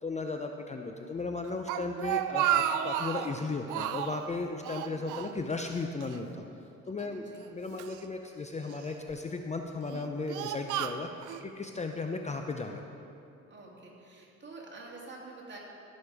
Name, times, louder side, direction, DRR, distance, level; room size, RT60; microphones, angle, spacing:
voice 1, 0.0-6.4 6.9-7.2 7.5-11.1 11.4-12.8, left 3 dB, 25° left, 4 dB, 0.6 m, -35 dB
Speech, 1.4-3.3 3.7-4.2 4.6-5.7 6.0-6.2 7.0-8.0 8.7-9.1 9.7-11.4, right 11 dB, 85° right, 0.5 m, -32 dB
voice 2, 7.1-7.4 13.5-15.6, right 3 dB, 35° right, -3 dB, 2.5 m, -47 dB
14.0 x 6.4 x 4.8 m, 2.7 s
cardioid pair, 90°, 30 cm